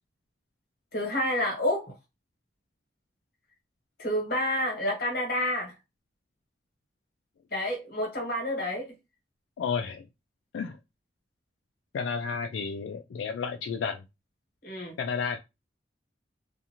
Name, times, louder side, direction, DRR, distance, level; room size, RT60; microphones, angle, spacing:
voice 1, 0.9-1.9 4.0-5.7 7.5-8.9 14.6-15.0, left 1 dB, 50° left, 1.2 m, -29 dB
voice 2, 9.6-10.0 10.5-10.8 11.9-14.0 15.0-15.4, left 5 dB, 85° left, 0.3 m, -31 dB
2.5 x 2.5 x 2.8 m
head